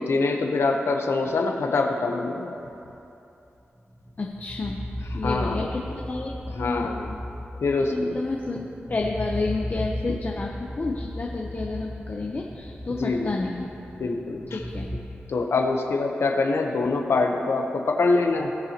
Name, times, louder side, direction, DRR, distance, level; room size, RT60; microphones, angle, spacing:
voice 1, 0.0-2.6 5.2-5.7 6.5-7.2 7.6-8.1 13.0-13.4 14.0-14.6 15.3-18.5, left 3 dB, 90° left, 3 dB, 0.9 m, -24 dB
sound 1, 3.9-15.0, equal, 15° right, 1.2 m, -35 dB
voice 2, 4.2-4.8 5.1-6.9 7.9-13.8 14.5-14.9, left 3 dB, 45° left, -1 dB, 0.7 m, -30 dB
19.5 x 6.9 x 2.9 m, 2.9 s
wide cardioid pair, 75°, 4 cm